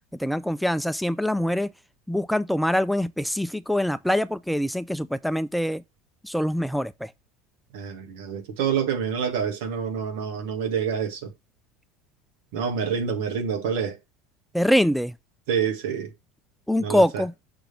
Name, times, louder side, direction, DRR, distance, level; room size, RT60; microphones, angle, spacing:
voice 1, 0.2-1.7 2.1-5.8 6.2-7.1 14.5-15.1 16.7-17.3, equal, ahead, 0.3 m, -24 dB
voice 2, 7.7-11.3 12.5-14.0 15.5-16.1 16.8-17.2, right 7 dB, 65° right, 1.7 m, -27 dB
6.1 x 3.4 x 5.8 m
hypercardioid pair, 75°, 0 cm